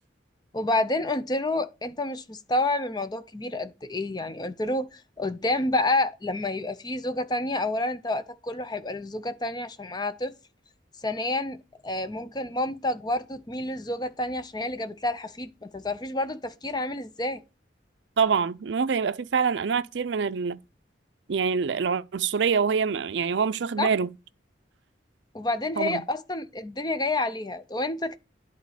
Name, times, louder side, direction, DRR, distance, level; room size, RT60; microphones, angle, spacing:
voice 1, 0.5-10.3 11.0-11.6 11.8-17.4 23.8-23.9 25.3-28.2, left 2 dB, 20° left, 0.6 m, -29 dB
voice 2, 18.2-20.6 21.3-24.1 25.8-26.0, right 6 dB, 70° right, 0.4 m, -25 dB
10.5 x 4.0 x 4.9 m
head